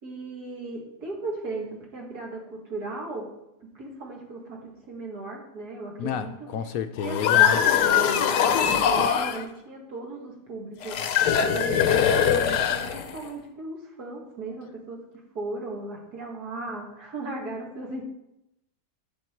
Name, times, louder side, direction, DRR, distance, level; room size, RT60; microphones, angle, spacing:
voice 1, 0.0-3.3 3.6-6.3 7.0-15.0 15.3-18.0, right 2 dB, 70° right, 2.6 m, -36 dB
voice 2, 6.0-7.6, left 8 dB, 70° left, 0.9 m, -30 dB
sound 1, 7.0-9.4 10.8-13.3, left 8 dB, 85° left, 1.3 m, -22 dB
10.5 x 7.1 x 4.5 m
omnidirectional pair, 1.7 m